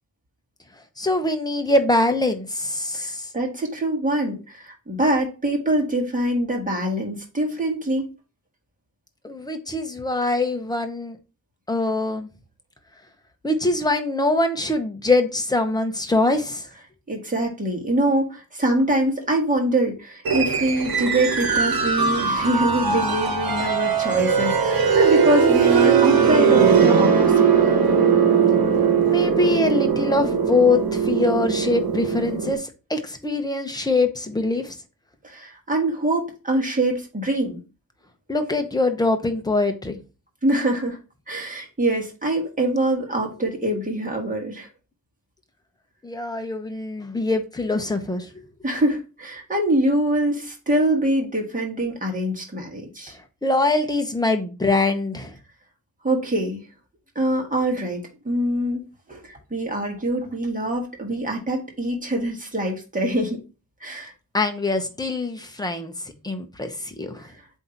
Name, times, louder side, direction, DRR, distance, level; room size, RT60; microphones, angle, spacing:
voice 1, 1.0-3.3 9.2-11.2 11.7-12.3 13.4-16.6 29.1-34.8 38.3-40.0 46.0-48.3 53.4-55.3 64.3-65.9 66.2-67.3, left 2 dB, 10° left, 6 dB, 0.7 m, -23 dB
voice 2, 3.0-8.1 17.1-27.8 35.2-37.6 40.4-41.0 41.3-44.7 48.6-53.1 56.0-56.6 57.1-58.8 59.1-63.4 63.8-64.1 67.2-67.3, right 1 dB, 20° right, 0 dB, 1.5 m, -24 dB
sound 1, 20.2-32.5, right 6 dB, 65° right, 1.2 m, -19 dB
7.8 x 2.7 x 4.4 m, 0.32 s
wide cardioid pair, 180°, 38 cm